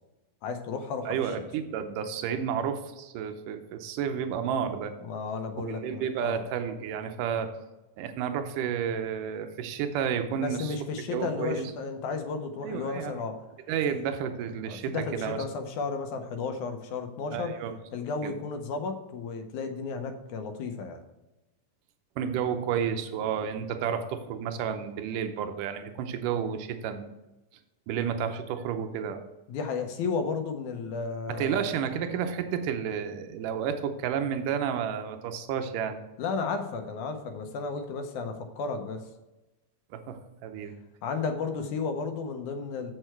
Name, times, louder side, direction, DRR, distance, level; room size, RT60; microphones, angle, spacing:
voice 1, 0.4-1.4 5.0-6.4 10.3-13.4 13.9-14.0 14.7-17.5 17.9-21.0 29.5-31.7 36.2-39.1 41.0-42.9, left 4 dB, 75° left, 6 dB, 2.2 m, -33 dB
voice 2, 1.1-4.9 5.6-7.5 8.0-11.6 12.6-13.1 13.7-15.4 17.3-17.8 18.2-18.3 22.2-27.1 27.9-29.2 31.4-36.0 39.9-40.7, right 8 dB, 85° right, 7 dB, 2.3 m, -31 dB
7.7 x 6.4 x 4.5 m, 1.0 s
omnidirectional pair, 3.7 m